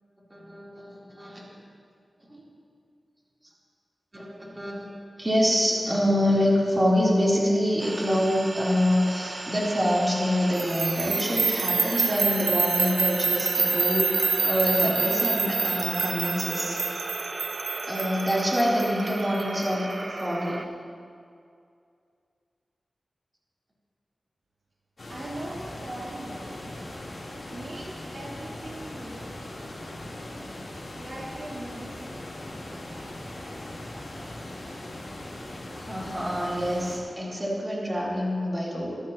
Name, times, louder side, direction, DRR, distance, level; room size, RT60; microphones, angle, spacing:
voice 1, 0.3-1.4 2.3-2.4 4.1-4.9 5.2-17.0 17.8-20.6 35.7-39.0, equal, 25° right, -6 dB, 3.5 m, -26 dB
sound 1, 7.8-20.7, right 2 dB, 40° right, 0.6 m, -36 dB
sound 2, 10.6-19.6, right 4 dB, 80° right, 0.8 m, -27 dB
sound 3, 25.0-37.0, left 1 dB, 50° left, 3.4 m, -39 dB
voice 2, 25.1-26.9 27.5-29.3 31.0-32.4, right 1 dB, 65° right, -6 dB, 3.0 m, -40 dB
22.5 x 12.0 x 3.0 m, 2.3 s
wide cardioid pair, 85°, 0 cm